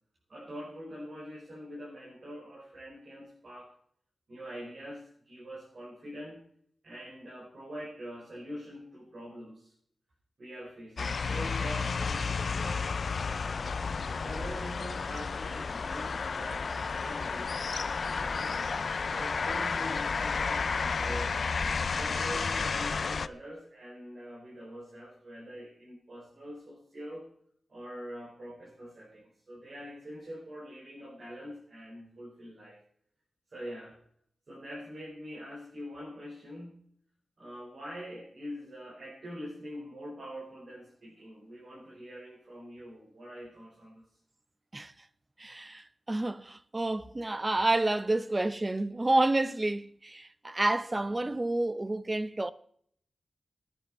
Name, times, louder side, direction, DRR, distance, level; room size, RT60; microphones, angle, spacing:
voice 1, 0.3-3.7 4.3-6.4 6.8-9.7 10.4-12.9 14.2-18.6 19.1-21.4 21.9-27.3 27.7-32.8 33.5-34.0 34.5-36.8 37.4-44.0, equal, 50° right, 5.6 m, -44 dB
sound 1, 11.0-23.3, left 5 dB, 55° left, 0.5 m, -32 dB
voice 2, 45.4-52.5, right 2 dB, 20° right, 0.6 m, -29 dB
18.5 x 10.0 x 4.6 m
wide cardioid pair, 155°, 0 cm